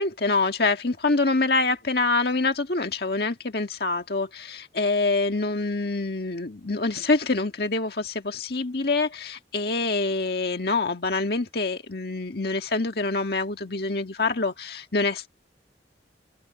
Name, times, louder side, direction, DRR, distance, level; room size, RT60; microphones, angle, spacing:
voice 1, 0.0-15.3, left 3 dB, 60° left, 1.8 m, -26 dB
open air
head